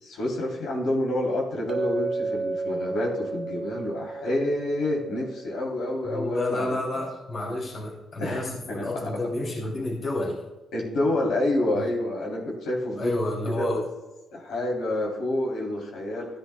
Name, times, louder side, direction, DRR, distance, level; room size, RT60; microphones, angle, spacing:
voice 1, 0.0-6.7 8.2-9.2 10.7-13.1 13.5-13.8 14.3-16.4, left 1 dB, 85° left, -3 dB, 3.5 m, -28 dB
Chink clink, 1.7-5.9, right 3 dB, 45° right, 1.4 m, -33 dB
voice 2, 6.1-10.4 11.7-11.9 13.0-13.8, left 1 dB, 40° left, -2 dB, 3.1 m, -30 dB
14.5 x 10.5 x 2.3 m, 1.1 s
cardioid pair, 95°, 0 cm